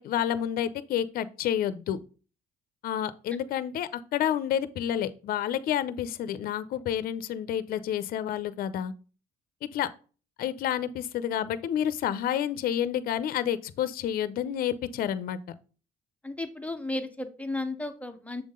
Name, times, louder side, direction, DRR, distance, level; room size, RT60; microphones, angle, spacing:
voice 1, 0.0-2.0 2.8-8.9 9.7-9.9 10.4-15.4, left 10 dB, 60° left, 0.5 m, -29 dB
voice 2, 16.2-18.4, left 2 dB, 10° left, 0.6 m, -34 dB
7.0 x 3.7 x 3.6 m
cardioid pair, 110°, 17 cm